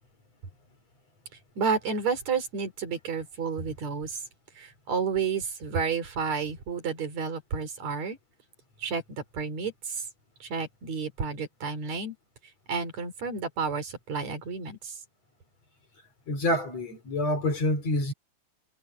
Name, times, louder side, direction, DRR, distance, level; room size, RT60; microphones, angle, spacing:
voice 1, 1.6-4.2 4.6-8.2 8.8-10.0 10.4-12.1 12.7-15.0, right 5 dB, 65° right, 4.8 m, -31 dB
voice 2, 16.3-18.1, left 1 dB, 60° left, 6.1 m, -27 dB
omnidirectional pair, 3.3 m